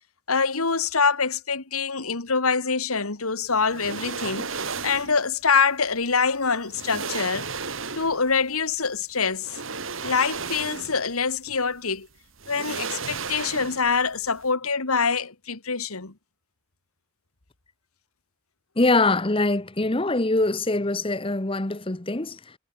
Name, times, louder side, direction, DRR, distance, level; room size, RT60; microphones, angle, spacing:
voice 1, 0.3-7.5 8.0-9.6 10.0-12.1 12.5-16.1, left 5 dB, 90° left, 2.2 m, -25 dB
sound 1, 3.7-5.2 6.2-6.3 6.7-8.3 9.4-11.1 11.5-11.6 12.4-14.0 14.3-14.4, right 5 dB, 65° right, 3.3 m, -34 dB
voice 2, 18.8-22.5, left 2 dB, 25° left, 1.0 m, -23 dB
head